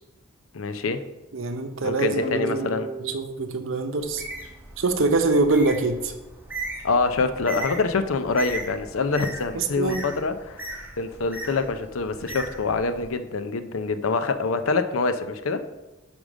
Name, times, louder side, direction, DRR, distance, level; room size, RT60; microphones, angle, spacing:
voice 1, 0.5-1.1 1.8-2.9 6.8-10.7 11.0-15.6, left 4 dB, 85° left, 10 dB, 0.6 m, -25 dB
voice 2, 1.3-2.7 3.0-4.2 4.8-6.1 9.5-10.0, right 3 dB, 70° right, 7 dB, 0.7 m, -24 dB
sound 1, 2.2-5.0, right 3 dB, 45° left, 0.9 m, -36 dB
Bird, 4.0-13.1, right 2 dB, 10° right, 1.0 m, -38 dB
5.2 x 5.0 x 6.2 m, 1.1 s
head